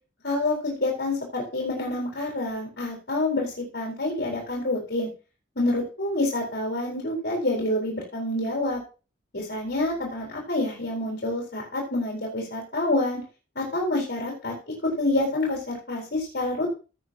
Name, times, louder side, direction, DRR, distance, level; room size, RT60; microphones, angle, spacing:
voice 1, 0.2-5.1 5.6-8.8 9.3-13.2 13.5-16.7, left 2 dB, 60° left, -3 dB, 4.5 m, -27 dB
16.0 x 8.8 x 2.9 m, 0.34 s
head